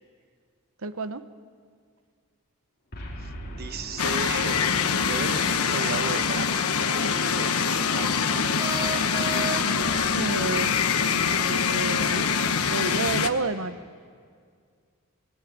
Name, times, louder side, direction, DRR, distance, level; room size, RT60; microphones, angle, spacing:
voice 1, 0.8-1.2 10.1-10.7 11.2-12.3 12.7-13.7, right 3 dB, 65° right, 11 dB, 1.0 m, -30 dB
Boom, 2.9-7.3, equal, 45° left, 4.3 m, -42 dB
voice 2, 3.2-6.6 6.9-8.4, right 4 dB, 45° right, 10 dB, 1.1 m, -36 dB
sound 1, 4.0-13.3, left 6 dB, 80° left, 1.2 m, -24 dB
sound 2, 8.6-10.0, right 3 dB, 20° right, 2.5 m, -32 dB
23.5 x 19.0 x 9.4 m, 2.1 s
head